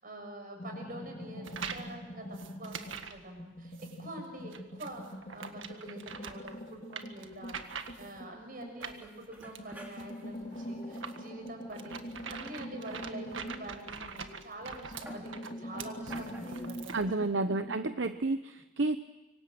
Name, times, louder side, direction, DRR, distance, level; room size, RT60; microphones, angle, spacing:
voice 1, 0.0-7.6 8.0-17.5 18.0-18.1, right 1 dB, 45° right, 3 dB, 7.1 m, -46 dB
sound 1, 0.6-3.0 3.4-9.0 9.5-14.5 14.8-18.2, equal, 40° left, 3.1 m, -44 dB
sound 2, 1.4-1.9 2.3-3.2 3.7-4.0 4.5-8.2 8.8-17.2, right 6 dB, 90° right, 1.7 m, -44 dB
sound 3, 5.5-6.1 6.4-6.8 7.3-7.4 7.7-7.8 8.4-8.5 8.8-11.9 12.4-12.9 14.2-14.3 14.9-17.1, right 1 dB, 10° right, 3.6 m, -55 dB
voice 2, 16.9-19.0, right 2 dB, 70° right, 10 dB, 0.9 m, -30 dB
26.0 x 24.5 x 7.8 m, 1.1 s
head